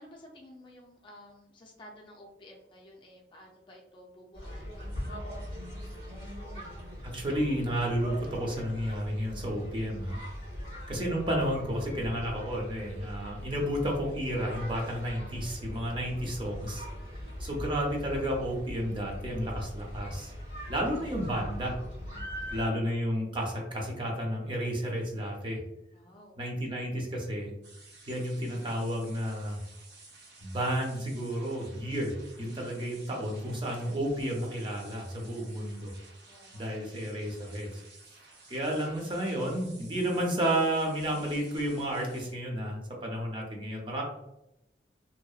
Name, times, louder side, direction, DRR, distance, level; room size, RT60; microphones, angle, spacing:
voice 1, 0.0-5.0 10.4-10.8 17.0-17.3 22.3-22.6 25.9-26.4 36.3-37.0, left 1 dB, 25° left, -1 dB, 0.4 m, -53 dB
sound 1, 4.3-22.7, equal, 85° right, 1.4 m, -41 dB
voice 2, 7.0-10.2 10.9-16.8 17.4-20.3 20.7-21.8 22.5-25.6 26.4-27.5 28.1-29.6 30.4-35.9 36.5-37.8 38.5-44.0, equal, 30° right, -1 dB, 0.5 m, -32 dB
sound 2, 27.6-42.3, right 3 dB, 65° right, 0.6 m, -54 dB
2.6 x 2.0 x 2.3 m, 0.86 s
head